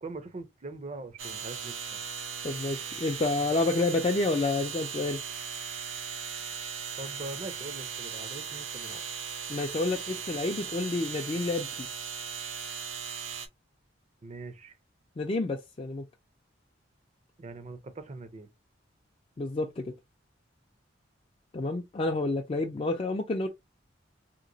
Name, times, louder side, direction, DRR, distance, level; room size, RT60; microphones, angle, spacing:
voice 1, 0.0-2.0 7.0-9.0 14.2-14.8 17.4-18.5, right 3 dB, 35° right, 0.5 m, -42 dB
sound 1, 1.2-13.5, right 6 dB, 85° right, 0.7 m, -38 dB
voice 2, 2.4-5.2 9.5-11.9 15.2-16.0 19.4-19.9 21.5-23.5, left 2 dB, 30° left, 0.4 m, -29 dB
2.9 x 2.9 x 2.6 m
head